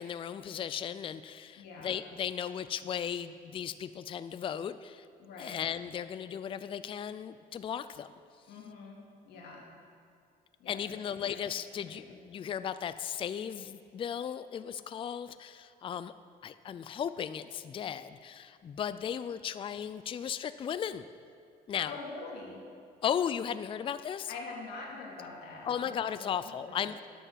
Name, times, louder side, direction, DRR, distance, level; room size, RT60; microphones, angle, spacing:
voice 1, 0.0-5.1 5.4-8.1 10.7-16.1 16.4-21.0 21.7-21.9 23.0-24.3 25.7-27.0, left 8 dB, 30° left, 13 dB, 0.4 m, -36 dB
voice 2, 1.6-2.0 5.2-5.6 8.5-9.0 9.2-9.7 10.6-11.4 11.7-12.1 21.9-22.6 24.3-26.8, left 3 dB, 75° left, -2 dB, 2.7 m, -45 dB
9.9 x 7.1 x 7.5 m, 2.3 s
cardioid pair, 110°, 17 cm